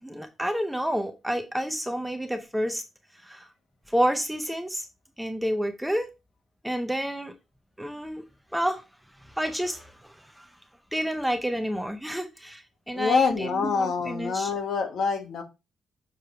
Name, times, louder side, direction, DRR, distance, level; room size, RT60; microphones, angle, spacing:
voice 1, 0.0-2.8 3.2-3.5 3.9-4.9 5.2-6.1 6.6-7.3 7.8-8.2 8.5-8.8 9.4-10.5 10.9-14.5, equal, ahead, 6 dB, 0.6 m, -29 dB
voice 2, 12.9-15.4, left 5 dB, 60° left, 4 dB, 1.5 m, -26 dB
6.6 x 4.6 x 3.4 m, 0.25 s
wide cardioid pair, 170°, 0 cm